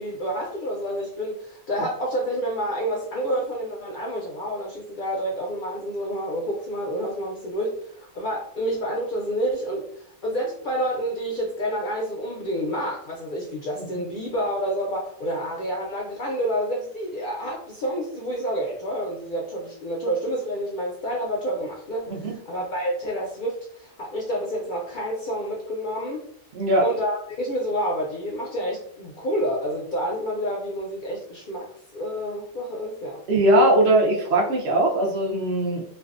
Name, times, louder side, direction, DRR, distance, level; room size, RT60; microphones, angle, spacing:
voice 1, 0.0-26.2 26.8-33.2, equal, 60° left, -2 dB, 0.5 m, -29 dB
voice 2, 26.5-26.8 33.3-35.8, right 1 dB, 65° right, -1 dB, 0.8 m, -20 dB
2.5 x 2.3 x 2.3 m, 0.63 s
omnidirectional pair, 1.3 m